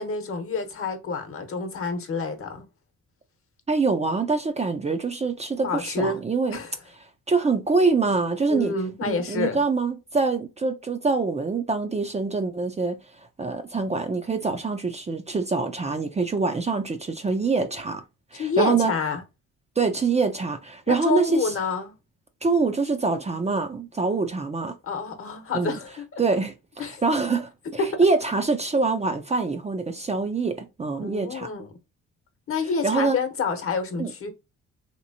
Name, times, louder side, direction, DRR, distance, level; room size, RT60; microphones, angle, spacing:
voice 1, 0.0-2.7 5.6-6.2 6.5-6.7 8.5-9.6 18.3-19.2 20.9-21.9 24.8-26.2 26.8-27.0 27.8-28.0 31.0-31.7 32.5-34.3, left 4 dB, 45° left, 1.0 m, -28 dB
voice 2, 3.7-6.6 7.3-8.7 9.0-13.0 13.4-18.0 18.3-18.9 19.8-21.5 22.4-24.8 25.5-25.8 26.2-27.5 28.0-31.5 32.8-33.2 34.0-34.1, right 4 dB, 20° right, 0.5 m, -25 dB
3.1 x 3.0 x 2.7 m
cardioid pair, 90°, 30 cm